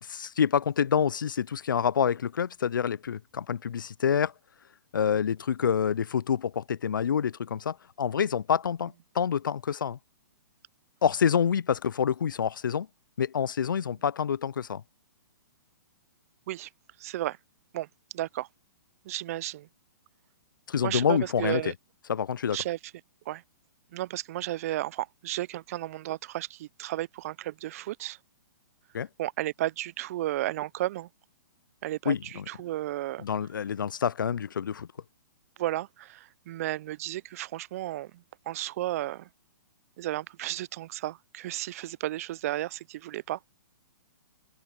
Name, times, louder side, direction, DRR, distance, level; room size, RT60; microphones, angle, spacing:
voice 1, 0.0-4.3 4.9-10.0 11.0-12.9 13.2-14.8 20.7-21.6 22.1-22.6 28.9-29.1 32.1-32.5 33.2-34.9, left 7 dB, 85° left, 0.4 m, -27 dB
voice 2, 17.0-17.4 17.7-17.9 18.1-18.5 19.0-19.7 20.8-21.7 22.5-22.8 23.3-23.4 23.9-28.2 29.2-31.1 31.8-33.2 35.6-39.3 40.0-43.4, right 15 dB, 50° right, 0.5 m, -33 dB
hypercardioid pair, 135°, 10 cm